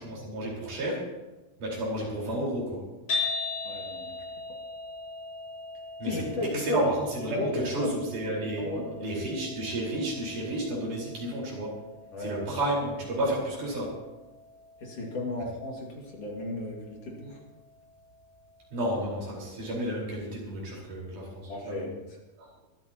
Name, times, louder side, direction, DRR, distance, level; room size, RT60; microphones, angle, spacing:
voice 1, 0.0-1.1 1.6-2.9 6.0-6.2 6.5-8.7 9.0-11.8 12.2-13.9 18.7-21.9 22.4-22.5, right 1 dB, 70° right, -4 dB, 6.1 m, -31 dB
sound 1, 3.1-19.3, left 4 dB, 70° left, 7.6 m, -41 dB
voice 2, 3.6-4.2 6.0-6.9 7.3-7.9 8.6-8.9 12.1-12.5 14.8-17.4 21.5-21.9, left 1 dB, 50° left, -1 dB, 3.1 m, -34 dB
23.5 x 13.5 x 3.0 m, 1.1 s
omnidirectional pair, 3.7 m